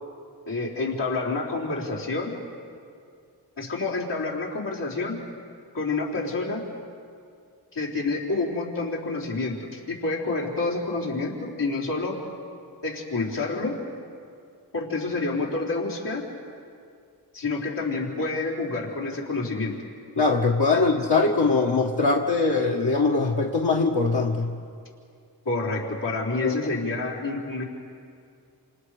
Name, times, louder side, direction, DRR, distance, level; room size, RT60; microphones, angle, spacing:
voice 1, 0.5-2.3 3.6-5.2 5.7-6.6 7.7-12.2 12.8-13.8 14.7-16.3 17.3-19.8 20.7-20.8 25.5-27.6, left 3 dB, 85° left, -6 dB, 4.1 m, -28 dB
voice 2, 20.2-24.6 26.4-26.6, left 3 dB, 70° left, -1 dB, 1.7 m, -22 dB
28.5 x 28.5 x 5.0 m, 2.4 s
cardioid pair, 45°, 41 cm